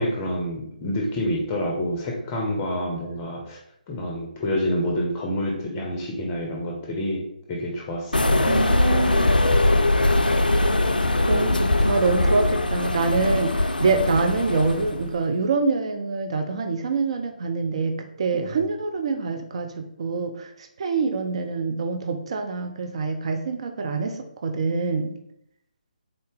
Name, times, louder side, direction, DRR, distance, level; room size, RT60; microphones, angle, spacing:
voice 1, 0.0-3.6 3.9-9.0 13.9-14.0 18.3-18.7, equal, 20° left, -1 dB, 0.6 m, -28 dB
sound 1, 8.1-15.1, left 2 dB, 80° left, 0.3 m, -21 dB
voice 2, 8.5-9.4 11.3-20.5 20.8-25.2, right 4 dB, 40° right, 6 dB, 0.4 m, -25 dB
3.8 x 2.7 x 3.4 m, 0.72 s
figure-of-eight pair, 145°, 5 cm